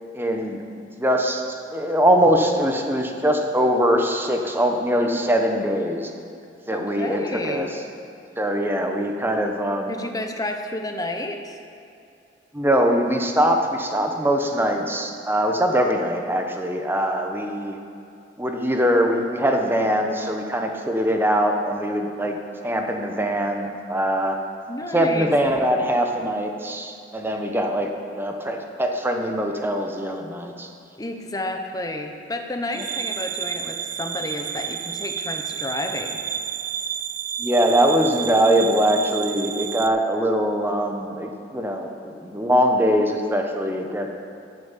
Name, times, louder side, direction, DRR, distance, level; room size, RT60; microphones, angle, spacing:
voice 1, 0.1-6.1 6.7-7.7 8.4-9.9 12.5-17.8 18.4-22.4 22.6-24.4 24.9-30.7 37.4-44.1, equal, 10° right, 3 dB, 1.1 m, -22 dB
voice 2, 6.7-7.7 9.9-11.6 24.7-25.3 31.0-36.2, left 1 dB, 20° left, 4 dB, 1.1 m, -31 dB
sound 1, 32.7-39.9, right 8 dB, 50° right, 0.5 m, -31 dB
14.0 x 7.5 x 7.5 m, 2.6 s
head